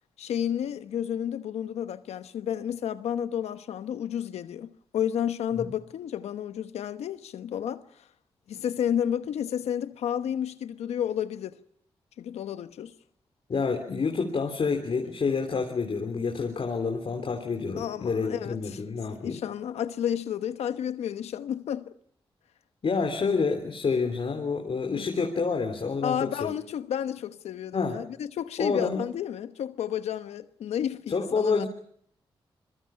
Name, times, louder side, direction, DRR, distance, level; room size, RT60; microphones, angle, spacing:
voice 1, 0.2-7.8 8.5-11.6 12.2-12.9 17.7-18.8 19.1-21.9 24.9-25.1 26.0-31.7, left 9 dB, 85° left, 1.1 m, -31 dB
voice 2, 13.5-19.4 22.8-26.5 27.7-28.0 28.6-29.0 31.1-31.7, left 4 dB, 60° left, 3.4 m, -28 dB
26.0 x 22.5 x 5.8 m
supercardioid pair, 45°, 11 cm